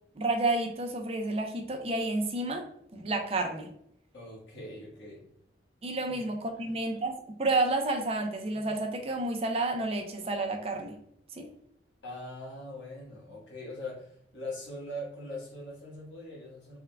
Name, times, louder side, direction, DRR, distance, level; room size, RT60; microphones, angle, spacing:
voice 1, 0.2-2.7 2.9-3.7 5.8-11.0 11.4-11.5, right 2 dB, 30° right, 3 dB, 0.5 m, -30 dB
voice 2, 4.1-5.2 6.1-6.7 12.0-16.8, left 1 dB, 85° left, -3 dB, 1.3 m, -42 dB
3.5 x 2.2 x 3.3 m, 0.70 s
head